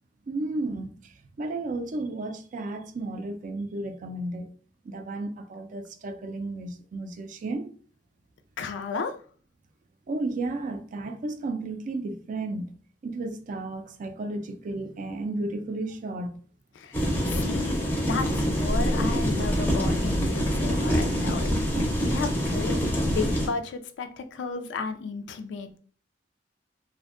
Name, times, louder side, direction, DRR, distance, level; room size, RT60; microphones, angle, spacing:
voice 1, 0.3-4.5 4.8-7.7 10.1-12.8 13.0-16.4, right 2 dB, 45° right, 0.3 m, -33 dB
voice 2, 8.6-9.2 16.7-21.5 22.0-25.8, left 4 dB, 90° left, 0.3 m, -34 dB
sound 1, 16.9-23.5, equal, 10° left, 0.5 m, -25 dB
2.5 x 2.2 x 2.4 m
head